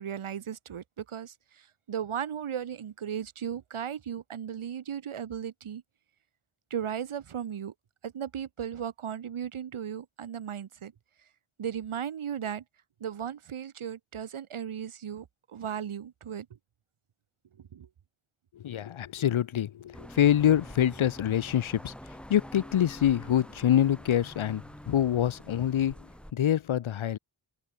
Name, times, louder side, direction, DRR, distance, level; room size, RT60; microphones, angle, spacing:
voice 1, 0.0-5.8 6.7-7.7 8.0-10.9 11.6-12.6 13.0-16.5 17.6-17.9, right 8 dB, 90° right, 1.3 m, -36 dB
voice 2, 18.6-21.9 22.3-25.9 26.3-27.2, left 10 dB, 75° left, 0.8 m, -25 dB
sound 1, 19.9-26.3, equal, ahead, 3.7 m, -46 dB
wide cardioid pair, 60°, 48 cm